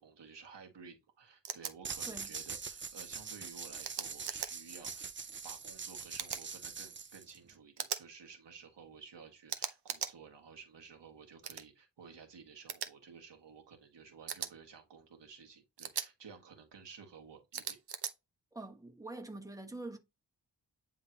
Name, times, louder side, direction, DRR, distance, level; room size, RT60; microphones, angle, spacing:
voice 1, 0.0-5.1 5.4-17.8, right 6 dB, 85° right, 1.7 m, -54 dB
sound 1, 1.4-1.7 3.8-4.5 6.2-6.4 7.8-8.0 9.5-10.1 11.4-11.6 12.7-12.9 14.3-14.5 15.8-16.1 17.5-18.1, right 8 dB, 65° right, 0.9 m, -38 dB
sound 2, 1.8-7.5, right 5 dB, 30° right, 0.5 m, -43 dB
voice 2, 18.5-20.0, right 2 dB, 10° right, 1.2 m, -45 dB
9.2 x 3.8 x 2.9 m
wide cardioid pair, 110°, 42 cm